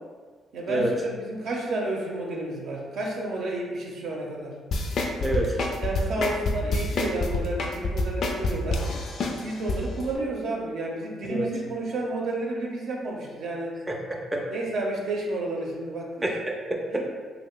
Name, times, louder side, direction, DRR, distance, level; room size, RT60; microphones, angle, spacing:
voice 1, 0.5-4.5 5.8-8.8 9.4-13.8 14.5-16.1 16.9-17.0, right 2 dB, 70° right, -1 dB, 0.6 m, -31 dB
sound 1, 4.7-9.8 10.1-10.2, left 2 dB, 60° left, 0.4 m, -26 dB
voice 2, 5.2-5.6 6.2-6.3 11.3-11.5 13.9-14.4 16.2-17.0, right 1 dB, 15° right, -1 dB, 0.4 m, -28 dB
3.1 x 2.0 x 3.6 m, 1.5 s
cardioid pair, 90°, 0 cm